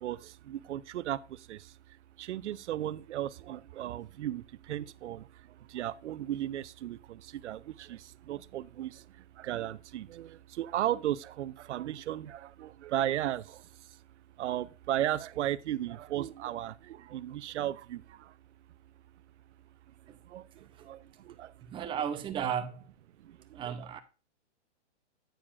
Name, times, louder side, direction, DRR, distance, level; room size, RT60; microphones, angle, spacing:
voice 1, 0.5-1.2 1.5-1.6 2.2-4.4 4.7-5.2 5.7-7.0 7.4-7.6 7.9-8.0 8.3-8.9 9.4-10.3 10.6-13.4 14.4-16.7 17.1-18.0 20.3-20.4 20.9-21.0 21.4-21.5, right 12 dB, 70° right, 0.6 m, -34 dB
voice 2, 20.6-20.9 21.6-22.9 23.5-24.0, right 8 dB, 15° right, 0.6 m, -35 dB
9.2 x 8.5 x 2.5 m
hypercardioid pair, 130°, 36 cm